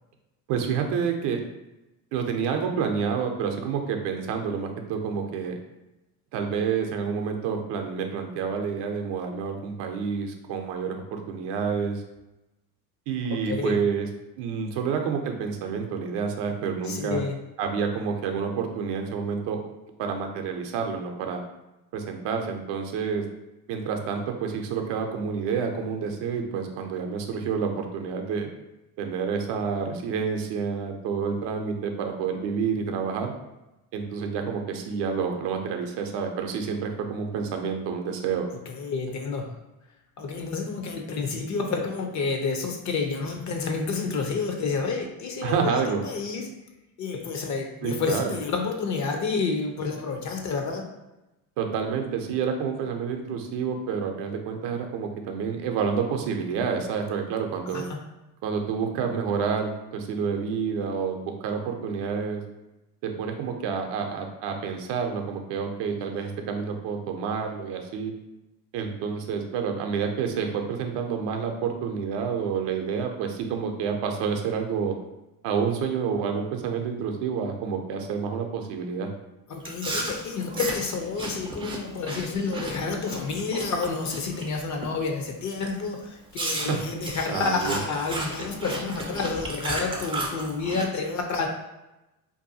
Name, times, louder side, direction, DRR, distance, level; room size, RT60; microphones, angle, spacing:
voice 1, 0.5-1.4 2.1-5.6 6.3-12.0 13.1-14.1 14.4-17.2 17.6-19.6 20.0-21.4 21.9-23.3 23.7-28.5 29.0-33.3 33.9-38.5 45.4-46.0 47.8-48.3 51.6-57.8 58.4-62.4 63.0-68.1 68.7-75.0 75.4-79.1 86.6-86.8 87.3-87.8, right 6 dB, 65° right, 4 dB, 0.6 m, -29 dB
voice 2, 13.3-13.8 16.8-17.4 38.5-39.5 40.2-46.5 47.0-50.9 57.7-58.0 79.5-91.5, left 4 dB, 40° left, 2 dB, 0.5 m, -29 dB
Chewing mastication, 79.6-84.5 84.8-85.1 85.6-85.8 86.3-90.9, right 2 dB, 10° right, 0.4 m, -34 dB
2.6 x 2.3 x 2.6 m, 0.99 s
hypercardioid pair, 75°, 46 cm